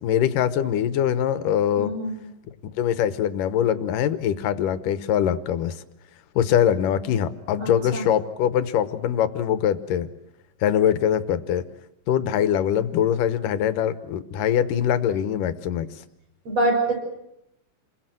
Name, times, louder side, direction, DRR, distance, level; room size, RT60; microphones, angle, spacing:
voice 1, 0.0-1.9 2.8-5.8 6.4-10.1 10.6-11.6 12.1-15.9, left 9 dB, 80° left, 13 dB, 2.7 m, -23 dB
voice 2, 1.8-2.1 7.6-8.0 16.5-16.9, right 2 dB, 50° right, 2 dB, 7.5 m, -24 dB
29.0 x 21.5 x 7.7 m, 0.83 s
omnidirectional pair, 3.8 m